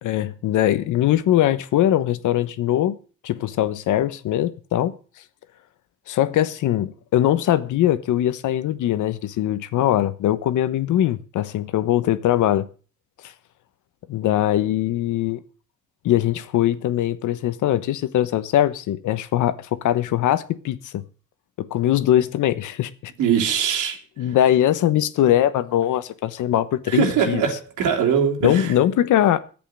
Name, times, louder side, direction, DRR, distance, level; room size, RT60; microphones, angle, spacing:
voice 1, 0.0-3.0 3.2-4.9 6.1-12.7 13.2-13.3 14.1-15.4 16.0-21.0 21.6-23.1 24.2-27.4 28.4-29.4, left 12 dB, 80° left, 1.1 m, -21 dB
voice 2, 23.2-24.0 26.9-28.7, right 8 dB, 85° right, 3.1 m, -21 dB
10.5 x 8.5 x 7.7 m
cardioid pair, 90°, 30 cm